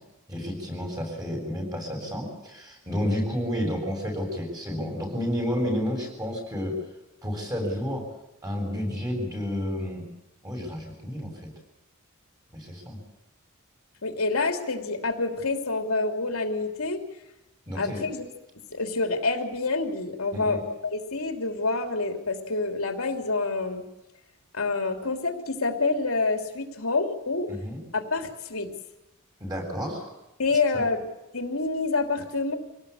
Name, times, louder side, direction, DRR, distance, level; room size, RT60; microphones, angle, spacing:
voice 1, 0.3-6.7 7.2-8.1 8.4-10.1 10.4-11.3 12.5-13.0 17.7-18.1 20.3-20.6 27.5-27.8 29.4-30.0 30.7-30.8, equal, 15° right, 2 dB, 7.7 m, -30 dB
voice 2, 14.0-17.0 17.7-18.2 18.7-23.8 24.5-27.5 27.9-28.7 30.4-31.1 31.3-32.6, left 3 dB, 80° left, 5 dB, 3.1 m, -27 dB
26.0 x 18.5 x 8.5 m, 0.96 s
head